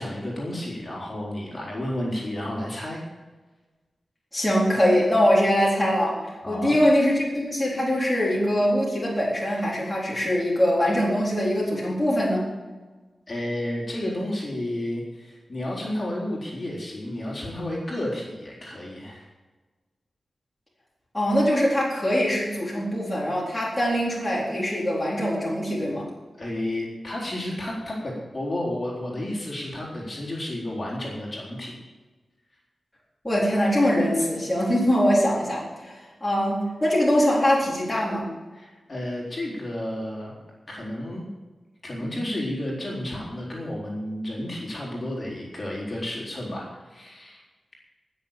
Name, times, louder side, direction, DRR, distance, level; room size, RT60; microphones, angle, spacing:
voice 1, 0.0-3.0 6.4-6.8 13.3-19.3 26.4-31.7 38.5-40.4 40.7-41.3 41.8-47.4, left 1 dB, 30° left, -4 dB, 4.0 m, -31 dB
voice 2, 4.3-6.2 6.5-12.4 21.1-26.1 33.2-38.3, equal, 10° left, -6 dB, 3.9 m, -22 dB
19.0 x 6.9 x 7.3 m, 1.3 s
wide cardioid pair, 165°, 0 cm